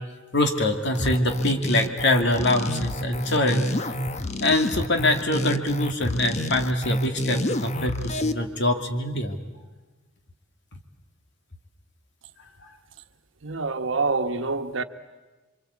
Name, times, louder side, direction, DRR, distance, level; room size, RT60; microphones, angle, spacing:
voice 1, 0.3-3.9 4.4-9.4, left 1 dB, 65° left, 2.7 m, -24 dB
sound 1, 0.9-8.3, left 1 dB, 35° left, 1.0 m, -28 dB
voice 2, 13.4-14.8, right 3 dB, 70° right, 1.2 m, -26 dB
28.0 x 24.5 x 8.4 m
head